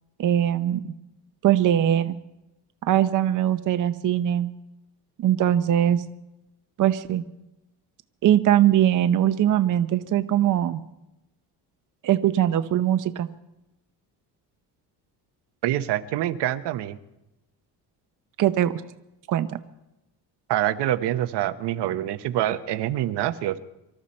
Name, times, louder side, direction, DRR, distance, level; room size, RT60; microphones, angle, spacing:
voice 1, 0.2-0.9 1.4-2.2 2.8-4.5 5.2-6.0 6.8-7.2 8.2-10.8 12.0-13.3 18.4-18.7 19.3-19.6, right 11 dB, 50° right, 10 dB, 0.7 m, -21 dB
voice 2, 15.6-17.0 20.5-23.6, right 13 dB, 75° right, 10 dB, 0.9 m, -26 dB
24.5 x 12.5 x 4.3 m, 0.94 s
cardioid pair, 130°, 41 cm